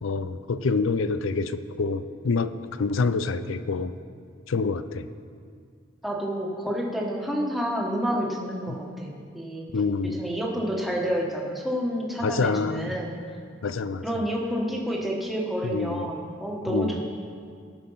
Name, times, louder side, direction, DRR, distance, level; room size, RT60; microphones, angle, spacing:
voice 1, 0.0-4.0 4.5-5.1 8.7-8.8 9.7-10.2 12.2-13.0 13.6-14.0 15.6-16.1 16.7-17.0, left 4 dB, 85° left, 13 dB, 0.5 m, -27 dB
voice 2, 6.0-9.7 10.0-13.2 14.0-17.0, equal, ahead, -2 dB, 1.4 m, -29 dB
15.5 x 6.7 x 5.6 m, 2.2 s
head